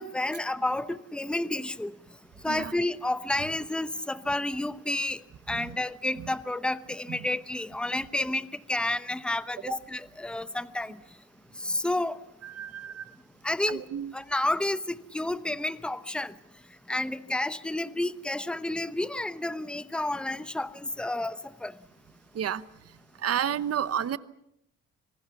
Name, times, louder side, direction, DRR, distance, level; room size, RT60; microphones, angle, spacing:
voice 1, 0.0-1.9 2.4-5.2 5.5-11.0 11.6-12.2 13.4-13.8 14.1-16.3 16.9-21.7, left 1 dB, 5° left, 14 dB, 0.9 m, -30 dB
voice 2, 12.5-13.0 13.7-14.1 22.3-22.6 23.2-24.2, right 9 dB, 55° right, 16 dB, 1.0 m, -31 dB
26.5 x 19.5 x 7.1 m, 0.79 s
cardioid pair, 90°, 30 cm